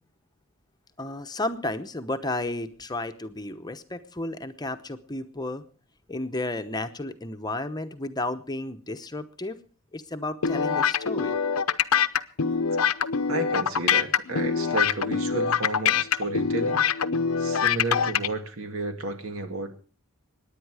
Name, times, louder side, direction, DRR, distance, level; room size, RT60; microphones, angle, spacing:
voice 1, 1.0-5.6 6.1-9.6 9.9-11.4, left 2 dB, 20° left, 8 dB, 0.9 m, -32 dB
sound 1, 10.4-18.3, left 7 dB, 90° left, 0.7 m, -24 dB
voice 2, 13.3-16.9 17.4-19.7, right 2 dB, 75° right, 7 dB, 2.3 m, -32 dB
23.5 x 10.0 x 4.9 m, 0.39 s
head